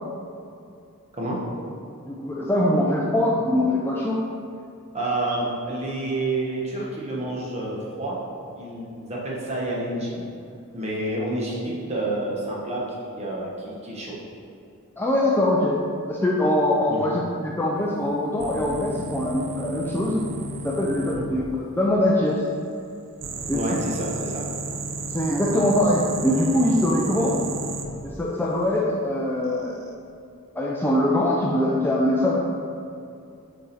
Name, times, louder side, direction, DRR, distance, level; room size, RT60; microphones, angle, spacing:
voice 1, 2.1-4.2 15.0-15.8 16.1-20.3 20.6-21.5 21.8-22.4 23.5-23.8 25.1-27.4 28.2-29.8 30.6-32.4, left 1 dB, 10° left, -4 dB, 0.4 m, -22 dB
voice 2, 4.9-8.2 8.5-10.2 10.7-14.1 16.9-17.1 21.1-21.3 23.5-24.4, right 1 dB, 30° right, -4 dB, 1.1 m, -29 dB
sound 1, 18.4-21.2 23.2-27.9 29.5-29.9, right 3 dB, 55° right, 0.7 m, -33 dB
7.1 x 3.7 x 4.1 m, 2.5 s
head